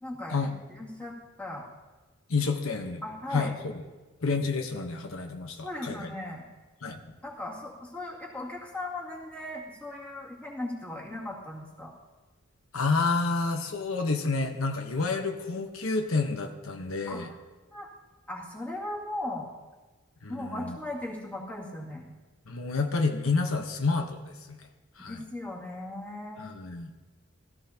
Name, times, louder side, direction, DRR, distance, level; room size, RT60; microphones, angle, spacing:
voice 1, 0.0-1.7 3.0-3.5 5.6-6.4 7.2-11.9 17.1-17.3 17.7-17.9 18.3-19.5 20.3-22.1 25.0-26.5, left 1 dB, 5° left, -4 dB, 2.3 m, -38 dB
voice 2, 2.3-3.0 3.3-3.8 4.2-6.1 6.8-7.1 12.7-17.3 20.2-20.8 22.5-24.6 25.0-25.2 26.4-26.9, left 3 dB, 85° left, 4 dB, 1.1 m, -29 dB
17.0 x 13.5 x 2.9 m, 1.2 s
head